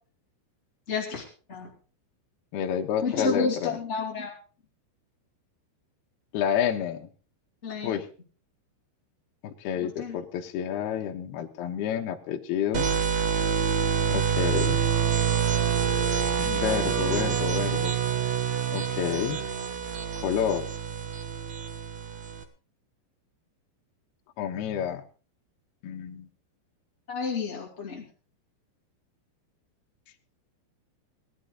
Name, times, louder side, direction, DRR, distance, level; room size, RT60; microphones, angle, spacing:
voice 1, 0.9-1.7 3.0-4.3 7.6-7.9 9.8-10.2 27.1-28.0, left 5 dB, 25° left, -3 dB, 1.5 m, -31 dB
voice 2, 2.5-3.8 6.3-7.1 7.8-8.1 9.4-12.9 14.1-14.8 16.4-18.0 18.7-19.4 20.2-20.7 24.4-25.0 25.8-26.3, left 9 dB, 70° left, 2 dB, 3.0 m, -29 dB
sound 1, 12.7-22.4, right 7 dB, 60° right, 1.9 m, -26 dB
18.5 x 12.0 x 3.9 m, 0.37 s
omnidirectional pair, 5.3 m